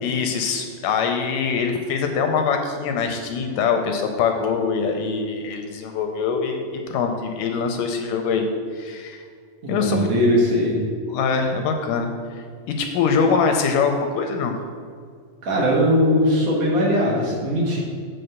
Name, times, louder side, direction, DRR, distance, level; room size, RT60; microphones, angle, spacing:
voice 1, 0.0-9.2 9.7-10.1 11.1-12.1 12.8-14.6, left 5 dB, 80° left, 4 dB, 2.1 m, -23 dB
voice 2, 9.6-10.7 15.4-17.8, equal, 60° right, -4 dB, 2.1 m, -20 dB
7.8 x 4.1 x 6.6 m, 2.1 s
omnidirectional pair, 4.0 m